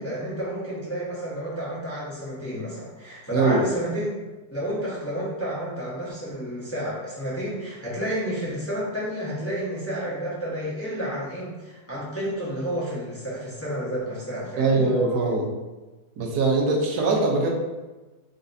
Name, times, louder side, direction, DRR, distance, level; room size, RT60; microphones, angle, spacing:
voice 1, 0.0-4.2 4.5-14.9, equal, 10° left, -8 dB, 1.0 m, -30 dB
voice 2, 14.6-15.5 16.2-17.5, right 3 dB, 90° right, -1 dB, 1.3 m, -22 dB
4.0 x 4.0 x 2.7 m, 1.2 s
omnidirectional pair, 1.6 m